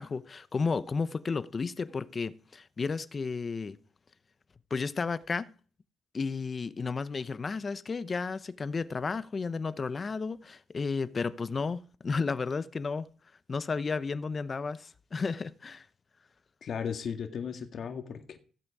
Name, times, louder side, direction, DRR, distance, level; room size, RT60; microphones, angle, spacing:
voice 1, 0.0-3.8 4.7-5.5 6.1-13.1 13.5-15.9, left 4 dB, 35° left, 0.8 m, -33 dB
voice 2, 16.6-18.4, left 7 dB, 55° left, 1.8 m, -36 dB
16.0 x 8.1 x 4.9 m
cardioid pair, 90°, 0 cm